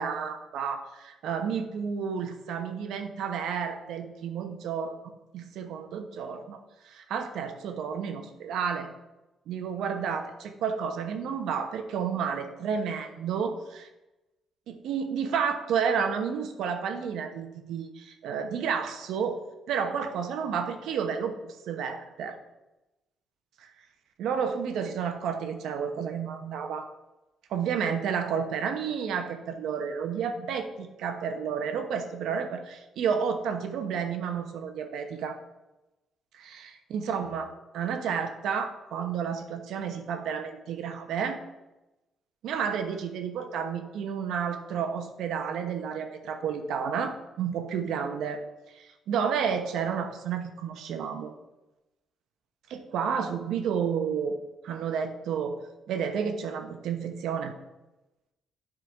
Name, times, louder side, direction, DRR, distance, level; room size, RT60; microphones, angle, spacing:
voice 1, 0.0-5.0 5.3-8.9 9.5-13.9 14.7-19.4 19.7-22.4 23.6-23.7 24.2-26.9 27.5-35.4 36.3-41.4 42.4-48.4 48.7-51.3 52.7-54.4 54.6-55.6 55.9-57.5, right 7 dB, 80° right, 6 dB, 0.9 m, -31 dB
9.7 x 3.9 x 4.8 m, 1.0 s
cardioid pair, 90°, 0 cm